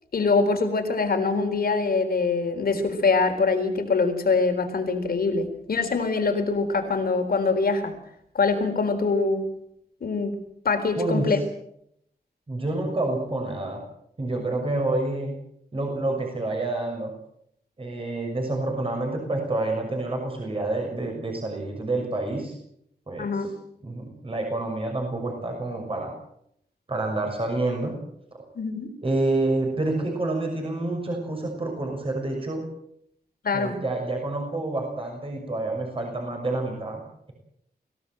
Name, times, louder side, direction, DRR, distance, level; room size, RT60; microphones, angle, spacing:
voice 1, 0.1-7.9 8.3-9.4 10.0-10.4 10.6-11.4 23.2-23.5 28.5-28.9 33.4-33.8, left 4 dB, 65° left, 6 dB, 4.2 m, -24 dB
voice 2, 11.0-11.4 12.5-13.8 14.2-15.3 15.7-17.1 17.8-22.5 23.1-23.5 23.8-26.1 26.9-28.0 29.0-32.7 33.5-37.3, right 2 dB, 35° right, 1 dB, 6.3 m, -28 dB
25.0 x 17.0 x 7.9 m, 0.74 s
wide cardioid pair, 165°, 17 cm